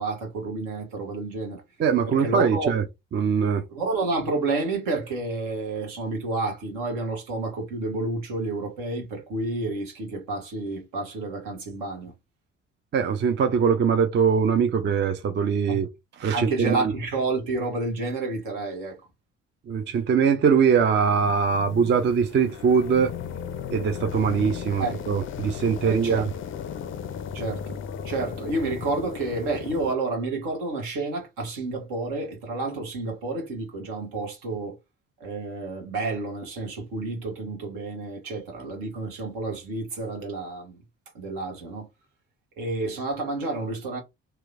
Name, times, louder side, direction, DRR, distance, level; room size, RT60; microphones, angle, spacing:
voice 1, 0.0-1.6 2.1-2.7 3.7-12.1 15.7-15.8 16.3-19.0 24.8-25.0 25.8-26.3 27.3-27.8 28.0-34.8 35.2-40.8 41.1-41.9 42.6-44.0, right 3 dB, 65° right, 1.1 m, -30 dB
voice 2, 1.8-2.8 3.1-3.6 12.9-15.9 16.2-16.9 19.7-23.1 23.7-26.3, right 6 dB, 30° right, 0.5 m, -22 dB
sound 1, 20.7-29.9, left 8 dB, 35° left, 0.4 m, -36 dB
2.9 x 2.0 x 2.5 m
figure-of-eight pair, 40°, 36 cm